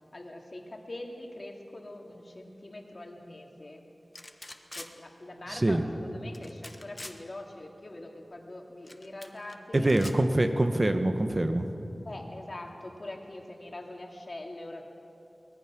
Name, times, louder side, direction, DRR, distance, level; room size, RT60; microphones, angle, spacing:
voice 1, 0.1-3.9 4.8-9.9 12.0-14.8, left 1 dB, 50° left, 1 dB, 2.4 m, -43 dB
sound 1, 4.1-4.9 6.3-7.2 8.9-9.5 9.9-10.2, left 1 dB, 30° left, 1.3 m, -44 dB
voice 2, 5.5-5.8 9.7-11.7, right 1 dB, 35° right, 6 dB, 1.4 m, -25 dB
24.0 x 18.5 x 6.2 m, 2.9 s
wide cardioid pair, 65°, 0 cm